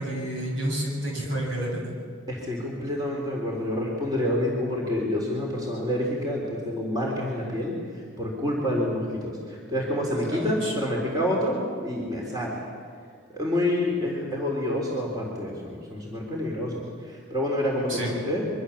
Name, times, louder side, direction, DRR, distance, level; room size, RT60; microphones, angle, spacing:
voice 1, 0.0-1.9 10.3-10.7 17.9-18.1, right 1 dB, 60° right, -1 dB, 7.8 m, -30 dB
voice 2, 2.3-12.6 13.3-18.5, left 1 dB, 20° right, -2 dB, 3.8 m, -28 dB
25.5 x 24.0 x 7.3 m, 2.1 s
head